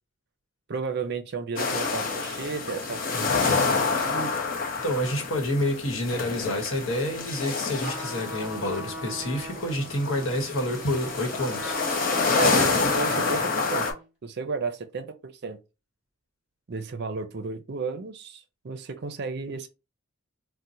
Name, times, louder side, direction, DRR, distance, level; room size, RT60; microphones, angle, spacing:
voice 1, 0.7-4.3 12.3-13.9 14.2-15.6 16.7-19.7, right 4 dB, 55° right, 0.5 m, -33 dB
sound 1, 1.6-13.9, left 4 dB, 45° left, 0.7 m, -28 dB
voice 2, 4.8-11.8, left 1 dB, 80° left, 1.0 m, -28 dB
Trumpet, 7.8-14.1, right 1 dB, 5° right, 1.3 m, -39 dB
4.2 x 2.1 x 2.6 m
head